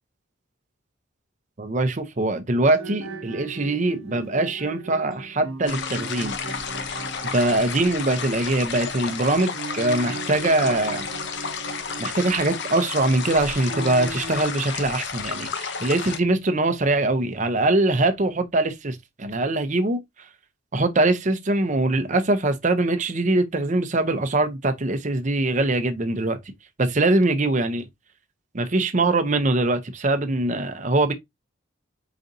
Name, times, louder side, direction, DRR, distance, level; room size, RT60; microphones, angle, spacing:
voice 1, 1.6-6.4 7.2-11.1 12.0-20.0 20.7-26.4 26.8-27.9 28.5-31.1, right 2 dB, 35° right, 0.7 m, -22 dB
sound 1, 2.6-14.5, right 3 dB, 80° right, 0.9 m, -38 dB
sound 2, 5.7-16.2, left 6 dB, 55° left, 0.7 m, -32 dB
5.0 x 4.0 x 2.6 m
head